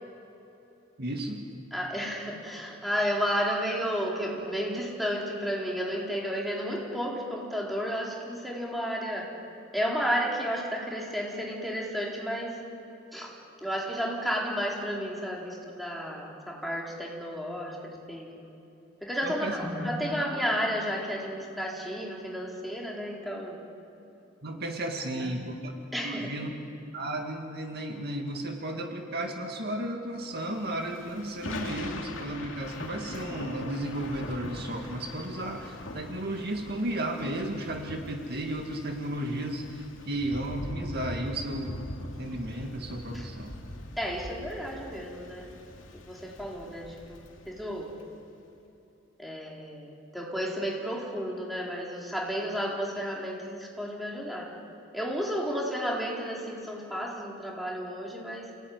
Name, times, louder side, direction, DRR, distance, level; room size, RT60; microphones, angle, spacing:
voice 1, 1.0-1.4 19.2-19.6 24.4-25.7 26.0-26.5 26.9-43.6, right 1 dB, 55° right, 3 dB, 2.1 m, -34 dB
voice 2, 1.7-9.3 9.7-12.6 13.1-13.3 13.6-18.3 19.0-23.6 25.2-25.3 25.9-26.3 43.1-43.3 44.0-45.5 46.1-47.9 49.2-54.5 54.9-58.5, equal, ahead, -3 dB, 4.4 m, -32 dB
Thunder / Rain, 30.5-48.1, left 1 dB, 80° left, 2.4 m, -42 dB
28.5 x 17.5 x 9.6 m, 2.9 s
head